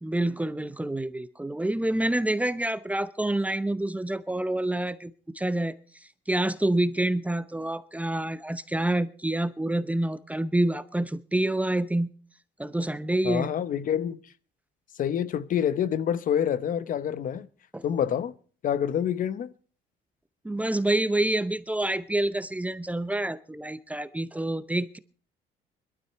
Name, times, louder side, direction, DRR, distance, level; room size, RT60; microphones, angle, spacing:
voice 1, 0.0-5.8 6.3-12.1 12.6-13.5 17.7-17.8 20.4-25.0, right 1 dB, 10° right, 0.7 m, -27 dB
voice 2, 13.2-14.2 15.0-17.5 17.8-18.3 18.6-19.5, left 9 dB, 55° left, 0.8 m, -27 dB
21.0 x 12.5 x 4.6 m
cardioid pair, 110°, 17 cm